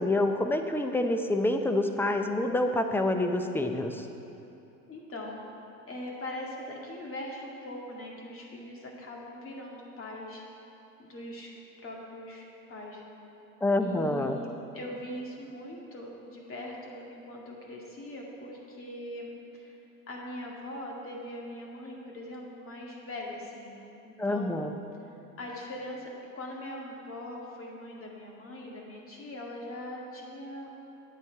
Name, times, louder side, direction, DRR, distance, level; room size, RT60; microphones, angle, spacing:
voice 1, 0.0-4.1 13.6-14.4 24.2-24.7, left 2 dB, 5° left, 6 dB, 0.5 m, -27 dB
voice 2, 4.9-5.5 5.9-10.4 11.0-11.5 11.8-13.2 13.8-19.8 20.1-24.6 25.4-30.7, left 1 dB, 30° left, -2 dB, 2.2 m, -41 dB
9.6 x 8.4 x 4.7 m, 3.0 s
hypercardioid pair, 90°, 43 cm